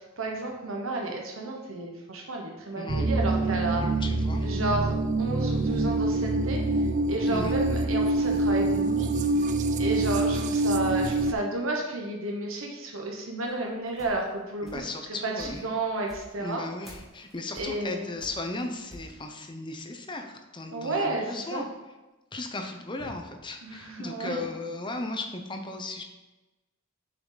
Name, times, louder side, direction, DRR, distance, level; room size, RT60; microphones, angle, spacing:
voice 1, 0.2-3.8 4.4-6.6 7.1-9.1 9.8-14.8 15.2-16.6 17.6-18.1 20.7-21.6 23.6-24.4, right 2 dB, 70° right, 0 dB, 1.1 m, -32 dB
voice 2, 2.7-3.1 3.8-4.5 7.3-7.5 14.6-15.6 16.4-21.7 22.3-26.0, left 2 dB, 20° left, 5 dB, 0.8 m, -36 dB
sound 1, 2.9-11.3, right 2 dB, 35° right, 0.4 m, -25 dB
sound 2, 13.4-15.0 15.4-19.2, equal, ahead, 1.6 m, -48 dB
7.3 x 5.8 x 3.9 m, 1.1 s
head